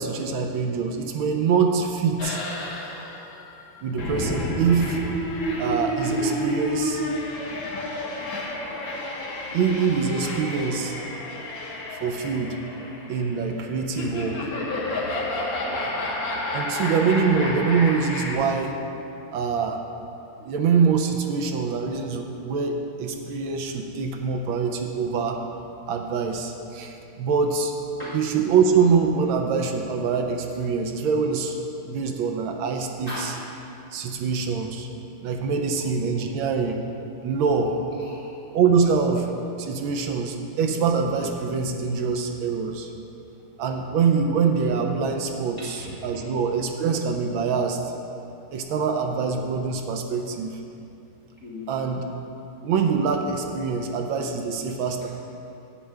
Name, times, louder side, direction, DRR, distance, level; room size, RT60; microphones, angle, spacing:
voice 1, 0.0-2.4 3.8-5.0 5.6-7.0 9.5-10.9 11.9-12.6 13.1-14.5 16.5-18.8 19.3-19.8 20.4-25.4 25.9-27.7 28.1-31.6 31.8-33.3 33.9-34.9 35.2-36.8 37.2-37.7 38.5-39.3 39.6-42.9 43.6-47.8 48.5-50.6 51.7-52.0 52.6-55.1, right 5 dB, 75° right, 4 dB, 1.4 m, -24 dB
sound 1, 2.2-18.3, left 1 dB, 70° left, 2.0 m, -30 dB
voice 2, 7.5-8.4 8.7-8.8 15.6-15.8 28.0-28.1 33.1-33.3 37.6-38.3 45.6-46.2 51.4-51.7, left 1 dB, 45° left, -8 dB, 1.3 m, -40 dB
10.0 x 8.3 x 3.4 m, 2.7 s
omnidirectional pair, 2.3 m